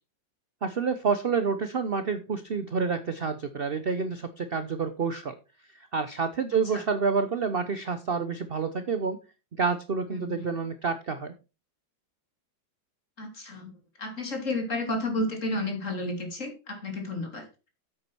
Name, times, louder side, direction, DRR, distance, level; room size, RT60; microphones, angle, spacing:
voice 1, 0.6-5.4 5.7-9.2 9.6-11.3, right 5 dB, 60° right, 10 dB, 0.6 m, -28 dB
voice 2, 13.2-13.7 14.0-17.5, left 1 dB, 40° left, 4 dB, 3.0 m, -31 dB
8.7 x 8.2 x 4.5 m, 0.30 s
omnidirectional pair, 2.1 m